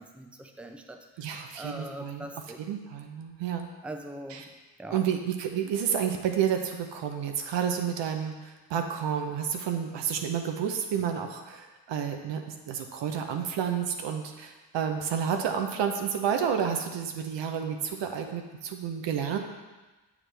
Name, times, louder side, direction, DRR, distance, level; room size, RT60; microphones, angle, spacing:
voice 1, 0.0-2.7 3.8-4.5 4.8-5.1, right 1 dB, 5° right, 4 dB, 0.7 m, -42 dB
voice 2, 1.2-2.3 2.7-3.7 4.3-4.4 4.9-19.4, right 8 dB, 75° right, 4 dB, 0.8 m, -30 dB
7.1 x 4.8 x 3.4 m, 1.2 s
supercardioid pair, 50°, 44 cm